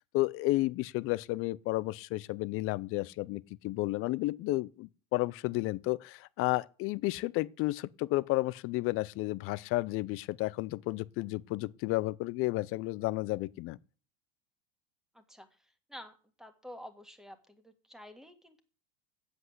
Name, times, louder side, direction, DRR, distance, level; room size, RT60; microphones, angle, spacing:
voice 1, 0.1-13.8, left 19 dB, 35° left, 0.4 m, -32 dB
voice 2, 15.1-15.5 15.9-18.6, equal, ahead, 1.7 m, -49 dB
7.9 x 7.8 x 8.0 m
hypercardioid pair, 115°, 41 cm